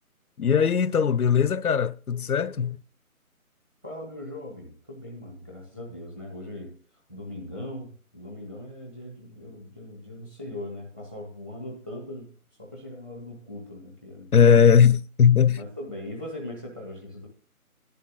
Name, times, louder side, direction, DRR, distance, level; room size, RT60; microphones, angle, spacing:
voice 1, 0.4-2.8 14.3-15.6, left 7 dB, 80° left, 0.7 m, -19 dB
voice 2, 3.8-6.8 7.1-12.3 12.6-14.8 15.5-17.3, left 1 dB, 10° right, 0.9 m, -40 dB
11.0 x 10.5 x 3.7 m
figure-of-eight pair, 155°, 44 cm